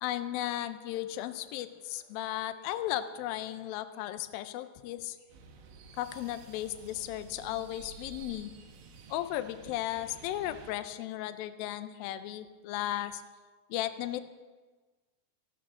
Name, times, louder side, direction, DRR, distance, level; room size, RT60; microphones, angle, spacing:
voice 1, 0.0-5.2 6.0-8.5 9.1-13.2 13.7-14.2, left 13 dB, 90° left, 11 dB, 2.0 m, -35 dB
sound 1, 5.3-10.7, right 5 dB, 90° right, 3.8 m, -51 dB
29.5 x 12.0 x 3.8 m, 1.3 s
omnidirectional pair, 5.0 m